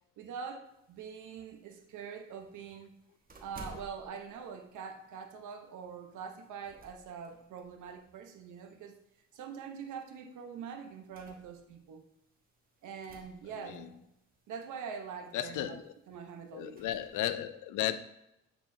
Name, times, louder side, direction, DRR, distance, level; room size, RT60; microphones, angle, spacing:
voice 1, 0.2-2.9 3.4-9.0 9.3-12.0 12.8-14.0 14.5-15.8 16.1-16.8, right 6 dB, 80° right, 1.0 m, -44 dB
sound 1, 0.6-17.2, right 2 dB, 30° right, 1.3 m, -59 dB
voice 2, 15.3-15.9 16.5-18.0, left 12 dB, 85° left, 0.5 m, -34 dB
8.7 x 4.3 x 2.7 m
cardioid pair, 90°, 30 cm